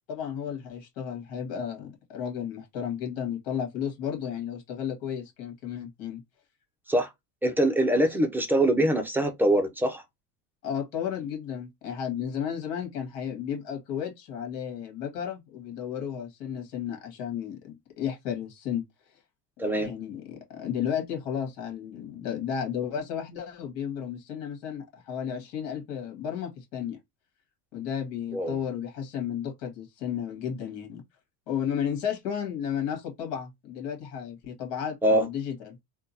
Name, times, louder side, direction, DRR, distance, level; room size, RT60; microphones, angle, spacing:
voice 1, 0.1-6.2 10.6-18.8 19.8-27.0 27.7-31.0 31.5-35.8, left 8 dB, 60° left, 1.9 m, -33 dB
voice 2, 7.4-10.0 19.6-19.9 28.3-28.5 35.0-35.3, right 1 dB, 5° right, 0.6 m, -23 dB
3.6 x 2.4 x 2.7 m
supercardioid pair, 115°, 48 cm